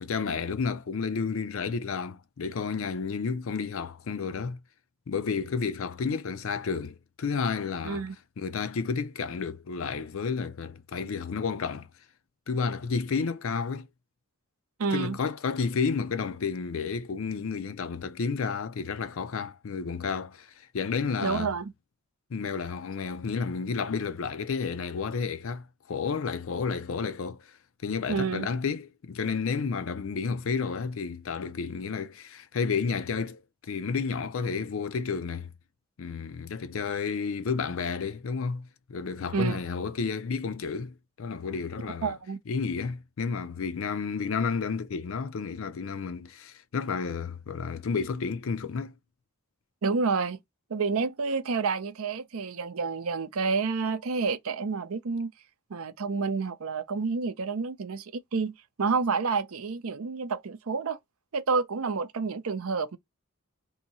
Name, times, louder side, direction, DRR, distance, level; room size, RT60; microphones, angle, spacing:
voice 1, 0.0-4.6 5.1-8.0 8.4-11.9 12.5-13.9 14.9-21.5 22.3-27.6 27.8-35.5 36.0-42.1 42.5-48.9, left 5 dB, 70° left, 0.5 m, -31 dB
voice 2, 14.8-15.2 21.2-21.7 28.1-28.5 39.3-39.6 42.0-42.4 49.8-50.4 50.7-55.3 55.7-61.0 61.3-63.0, right 4 dB, 80° right, 0.6 m, -29 dB
2.7 x 2.7 x 4.0 m
head